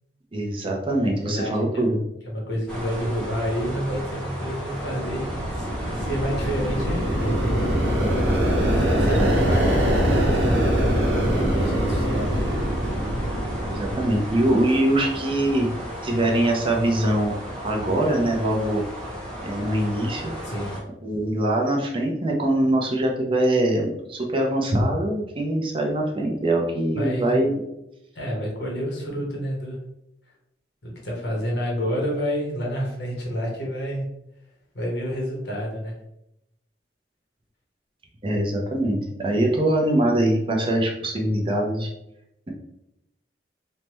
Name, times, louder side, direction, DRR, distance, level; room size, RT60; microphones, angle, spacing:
voice 1, 0.3-2.0 9.1-9.3 13.7-15.7 16.0-17.3 17.6-18.8 19.4-20.2 21.0-27.6 38.2-41.9, right 1 dB, 30° right, 0 dB, 0.5 m, -23 dB
voice 2, 1.2-1.9 2.2-5.7 5.9-7.4 8.7-10.5 11.1-12.4 20.4-20.8 26.9-27.3 28.1-29.8 30.8-34.1 34.7-35.9, equal, 75° left, -1 dB, 0.9 m, -29 dB
sound 1, 2.7-20.8, equal, 5° left, 0.7 m, -34 dB
sound 2, 4.8-14.6, equal, 85° right, 0.8 m, -23 dB
3.2 x 2.1 x 3.0 m, 0.84 s
head